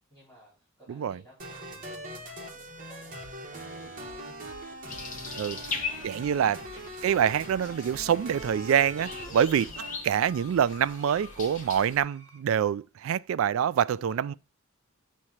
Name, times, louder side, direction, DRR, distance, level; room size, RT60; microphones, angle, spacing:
voice 1, 0.1-4.4 4.8-6.1 9.3-9.8 13.9-14.2, right 1 dB, 10° left, 4.4 m, -55 dB
voice 2, 0.9-1.2 5.3-5.6 6.0-14.3, right 8 dB, 65° right, 0.3 m, -26 dB
sound 1, 1.4-10.0, right 1 dB, 40° right, 1.5 m, -42 dB
sound 2, 4.9-12.0, left 5 dB, 40° left, 1.2 m, -40 dB
sound 3, 5.4-6.8 7.1-7.4 10.4-12.4, right 2 dB, 20° right, 1.9 m, -57 dB
8.7 x 3.2 x 5.6 m
head